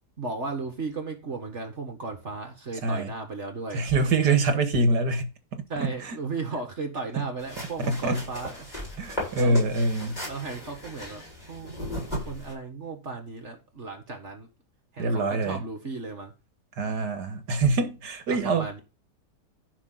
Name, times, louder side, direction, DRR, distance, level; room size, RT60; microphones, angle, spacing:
voice 1, 0.2-4.3 5.7-8.7 9.4-9.6 10.2-14.5 14.9-16.3 18.3-18.8, right 3 dB, 45° right, 2.0 m, -35 dB
voice 2, 3.7-5.3 5.8-6.2 7.8-8.2 9.0-10.2 15.0-15.6 16.8-18.7, right 3 dB, 85° right, 2.1 m, -25 dB
sound 1, 7.4-12.5, left 1 dB, 25° left, 8.0 m, -37 dB
15.0 x 5.9 x 4.0 m
omnidirectional pair, 1.7 m